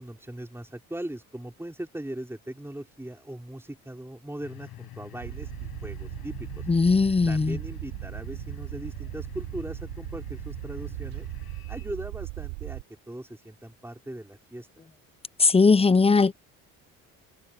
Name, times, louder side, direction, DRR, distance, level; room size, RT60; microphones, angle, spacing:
voice 1, 0.0-6.7 7.3-11.3 11.7-14.7, right 1 dB, 5° right, 4.8 m, -39 dB
sound 1, 4.4-11.9, left 12 dB, 60° left, 6.7 m, -45 dB
sound 2, 5.2-12.8, right 31 dB, 85° right, 3.6 m, -38 dB
voice 2, 6.7-7.6 15.4-16.3, left 4 dB, 15° left, 0.7 m, -19 dB
supercardioid pair, 70°, 41 cm